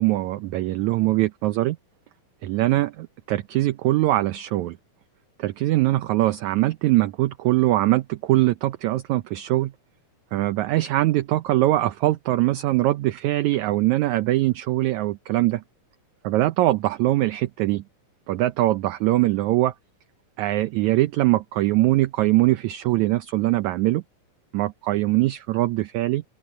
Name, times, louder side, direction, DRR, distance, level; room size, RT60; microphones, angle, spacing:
voice 1, 0.0-1.8 2.4-4.8 5.4-9.7 10.3-15.6 16.2-17.8 18.3-19.7 20.4-24.0 24.5-26.2, right 16 dB, 75° right, 1.9 m, -22 dB
open air
omnidirectional pair, 3.7 m